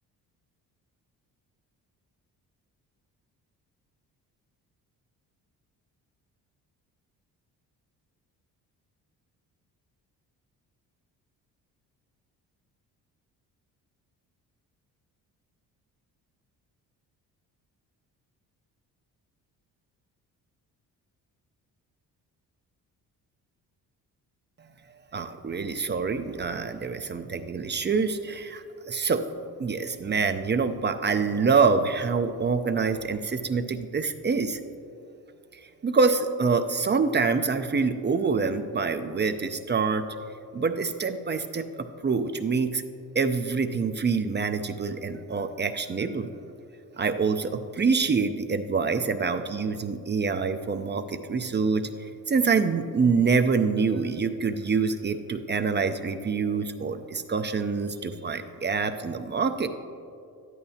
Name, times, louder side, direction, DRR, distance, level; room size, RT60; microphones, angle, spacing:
voice 1, 25.1-29.2 29.6-34.6 35.8-40.0 40.5-42.8 43.1-46.3 47.0-59.7, right 5 dB, 30° right, 8 dB, 0.6 m, -26 dB
12.5 x 11.0 x 2.8 m, 2.5 s
supercardioid pair, 75°, 38 cm